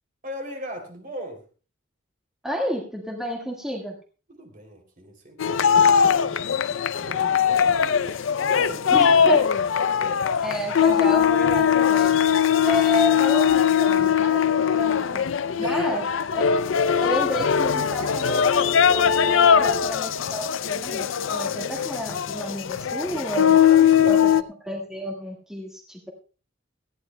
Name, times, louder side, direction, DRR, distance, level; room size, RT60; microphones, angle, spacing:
voice 1, 0.2-1.4 4.3-6.4 7.0-9.4 10.0-10.1 10.7-10.8 15.6-16.0 23.5-24.1, right 1 dB, 45° right, 4 dB, 2.9 m, -39 dB
voice 2, 2.4-3.9 8.9-9.5 10.4-12.2 12.6-15.2 15.6-16.0 16.3-16.4 16.8-23.6 24.1-26.1, equal, 5° right, -1 dB, 1.6 m, -31 dB
sound 1, 5.4-24.4, left 8 dB, 80° left, 0.5 m, -20 dB
18.5 x 14.0 x 2.2 m, 0.36 s
head